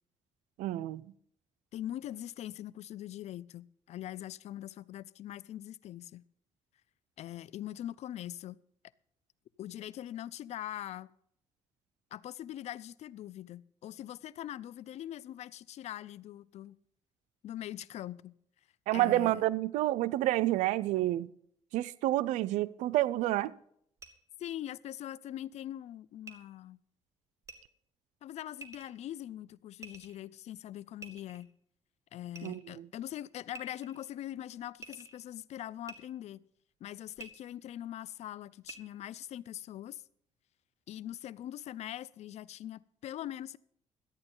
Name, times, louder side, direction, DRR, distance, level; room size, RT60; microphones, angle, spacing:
voice 1, 0.6-1.0 18.9-21.3 21.7-23.5 32.4-32.9, right 15 dB, 85° right, 0.5 m, -29 dB
voice 2, 1.7-6.2 7.2-8.6 9.6-11.1 12.1-16.8 17.4-18.4 18.9-19.4 24.4-26.8 28.2-31.5 32.1-36.4 36.8-40.0 40.9-43.6, left 12 dB, 65° left, 0.5 m, -42 dB
sound 1, 24.0-24.1 26.2-26.3 27.4-27.6 28.6-28.9 29.8-30.2 31.0-31.5 32.4-32.7 33.5-34.1 34.8-35.2 35.9-36.0 37.2-37.3 38.6-38.8, right 3 dB, 25° right, 1.9 m, -48 dB
13.0 x 8.8 x 5.4 m
cardioid pair, 80°, 12 cm